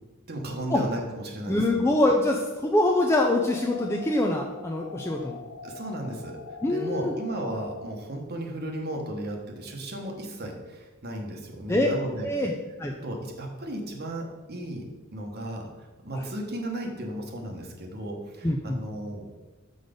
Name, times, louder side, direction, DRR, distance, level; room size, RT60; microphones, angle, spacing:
voice 1, 0.3-1.8 5.6-6.4 6.7-12.3 13.0-14.9 15.1-15.7 16.0-19.2, right 1 dB, 50° right, 1 dB, 1.1 m, -35 dB
voice 2, 1.5-5.4 6.6-7.1 11.7-11.9 12.2-12.5 12.8-12.9 16.1-16.3 18.4-18.8, left 1 dB, 10° left, 0 dB, 0.4 m, -24 dB
sound 1, 2.9-7.9, left 5 dB, 75° left, 0.6 m, -43 dB
6.4 x 4.0 x 5.1 m, 1.2 s
head